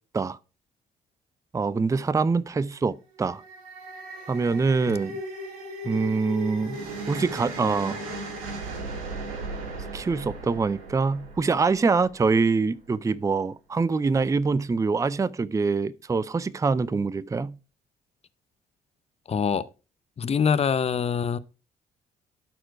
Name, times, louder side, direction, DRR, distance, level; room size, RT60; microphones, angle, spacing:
voice 1, 1.5-3.4 4.3-5.2 5.8-6.8 7.1-8.0 9.9-17.6, right 4 dB, 15° right, 0.5 m, -24 dB
sound 1, 3.2-12.5, right 2 dB, 85° right, 1.6 m, -37 dB
voice 2, 19.3-19.7 20.2-21.4, left 6 dB, 35° left, 0.7 m, -24 dB
12.0 x 4.4 x 4.6 m
hypercardioid pair, 50°, 19 cm